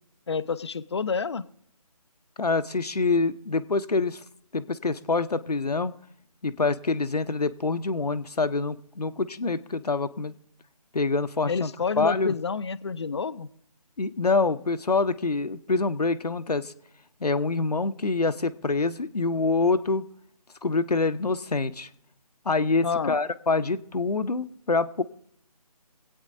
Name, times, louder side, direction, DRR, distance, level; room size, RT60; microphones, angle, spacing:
voice 1, 0.3-1.4 11.5-13.5 22.8-23.2, left 5 dB, 45° left, 14 dB, 0.5 m, -29 dB
voice 2, 2.4-4.2 4.5-5.9 6.4-10.3 10.9-11.7 12.0-12.3 14.0-16.7 17.2-20.0 20.6-21.9 22.5-25.0, left 3 dB, 75° left, 11 dB, 0.8 m, -26 dB
25.5 x 8.7 x 2.6 m, 0.70 s
figure-of-eight pair, 155°, 20 cm